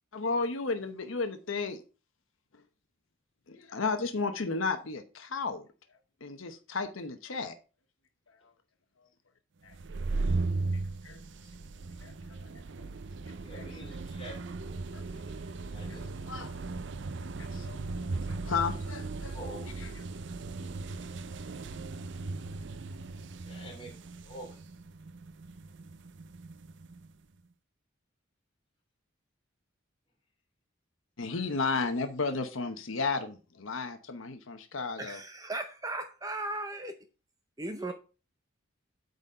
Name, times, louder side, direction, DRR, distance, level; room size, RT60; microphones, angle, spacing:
voice 1, 0.1-1.8 3.5-5.7 6.2-7.5 9.6-9.7 11.0-11.2 12.0-12.1 12.8-12.9 13.5-13.6 14.9-15.0 15.9-16.6 17.4-19.9 31.2-35.2, left 4 dB, 80° left, 0.9 m, -34 dB
sound 1, 9.7-27.1, right 3 dB, 60° right, 0.5 m, -37 dB
voice 2, 13.3-14.8 15.1-16.1 19.2-19.7 23.4-23.9 24.2-24.6 37.9-38.0, right 1 dB, 25° left, 2.8 m, -47 dB
voice 3, 35.0-36.9 37.6-37.9, right 2 dB, 15° right, 0.6 m, -36 dB
8.9 x 4.1 x 5.4 m
head